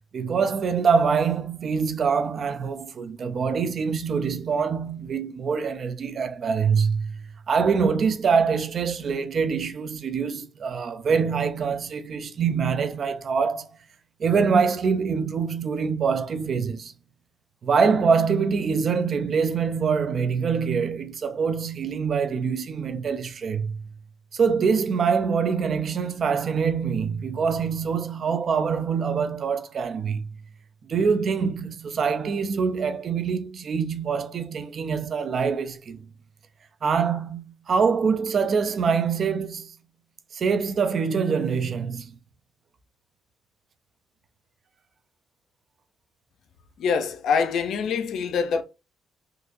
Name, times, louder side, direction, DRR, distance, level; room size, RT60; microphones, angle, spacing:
voice 1, 0.1-7.2 7.5-13.7 14.2-16.9 17.6-23.9 24.3-30.3 30.9-36.0 36.8-39.7 40.3-42.1, right 6 dB, 50° right, 0.5 m, -24 dB
voice 2, 46.8-48.6, left 6 dB, 75° left, 0.6 m, -24 dB
3.7 x 2.7 x 2.6 m
cardioid pair, 90°, 0 cm